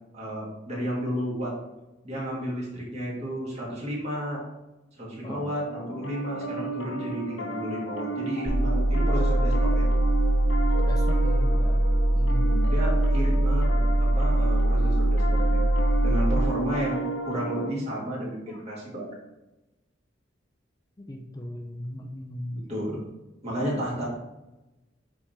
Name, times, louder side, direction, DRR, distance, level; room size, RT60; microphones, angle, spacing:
voice 1, 0.1-1.5 2.0-4.4 5.0-9.9 12.7-15.6 16.0-19.1 22.5-23.0 23.4-24.1, equal, 35° right, -5 dB, 2.7 m, -32 dB
Piano, 5.2-17.7, right 3 dB, 80° left, 0.8 m, -33 dB
sound 1, 8.4-16.4, right 1 dB, 15° right, 1.6 m, -22 dB
voice 2, 10.8-11.9 12.1-12.7 18.4-18.6 21.0-22.7, left 1 dB, 20° left, 3 dB, 0.6 m, -37 dB
8.7 x 3.7 x 4.5 m, 1.0 s
head